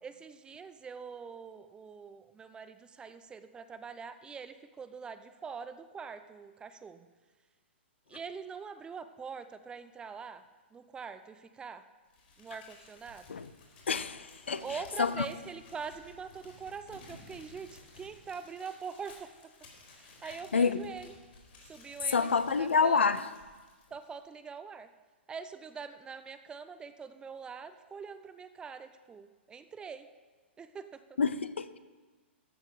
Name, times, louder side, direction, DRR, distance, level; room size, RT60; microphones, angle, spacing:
voice 1, 0.0-7.1 8.1-10.4 10.7-11.8 12.4-13.4 14.6-19.3 19.9-21.2 21.6-22.3 22.6-23.2 23.9-24.9 25.3-30.1 30.6-31.2, right 6 dB, 15° right, 11 dB, 0.5 m, -44 dB
Crumpling crinkling, 12.1-24.2, left 3 dB, 55° left, 3.9 m, -56 dB
voice 2, 13.9-14.6 15.0-15.3 20.5-20.8 22.1-23.3 31.2-31.8, left 5 dB, 70° left, 14 dB, 0.5 m, -27 dB
14.0 x 6.4 x 5.0 m, 1.4 s
figure-of-eight pair, 110°, 6 cm